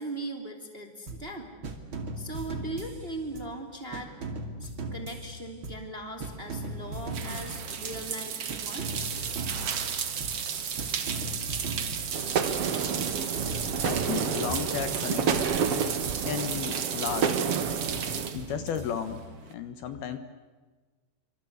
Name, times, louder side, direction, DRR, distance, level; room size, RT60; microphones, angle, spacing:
voice 1, 0.0-1.5 2.2-4.3 4.6-9.1, right 1 dB, 15° right, 5 dB, 2.4 m, -39 dB
sound 1, 1.1-1.4 1.6-3.6 3.9-6.0 6.2-8.2 8.5-10.5 10.8-12.7 13.1-15.1 15.3-17.2 17.6-19.3, right 2 dB, 35° right, 2.6 m, -39 dB
sound 2, 6.3-19.5, right 7 dB, 50° right, 2.0 m, -34 dB
sound 3, 12.1-18.3, right 6 dB, 75° right, 1.3 m, -30 dB
voice 2, 13.8-15.5 16.2-17.4 18.3-20.2, left 8 dB, 65° left, 10 dB, 3.0 m, -34 dB
28.0 x 25.5 x 8.1 m, 1.3 s
omnidirectional pair, 5.1 m